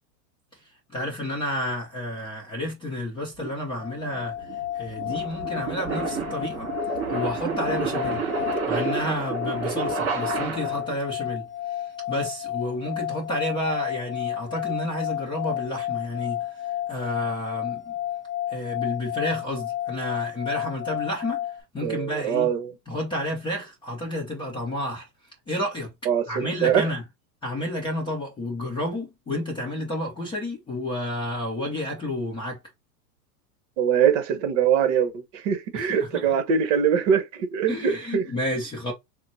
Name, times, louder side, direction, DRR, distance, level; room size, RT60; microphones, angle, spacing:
voice 1, 0.9-4.4 4.7-6.7 7.1-8.2 8.7-11.5 11.8-17.9 18.5-21.5 21.7-22.5 22.9-25.1 25.5-25.9 26.3-27.0 27.4-32.6 35.7-36.2 37.7-38.9, left 1 dB, 10° left, 0.6 m, -30 dB
sound 1, 3.4-11.0, right 6 dB, 25° right, 2.4 m, -30 dB
sound 2, 3.8-21.6, left 12 dB, 30° left, 1.0 m, -32 dB
voice 2, 21.8-22.7 26.0-26.9 33.8-38.2, right 8 dB, 45° right, 1.0 m, -23 dB
5.7 x 2.1 x 2.6 m
supercardioid pair, 145°, 50 cm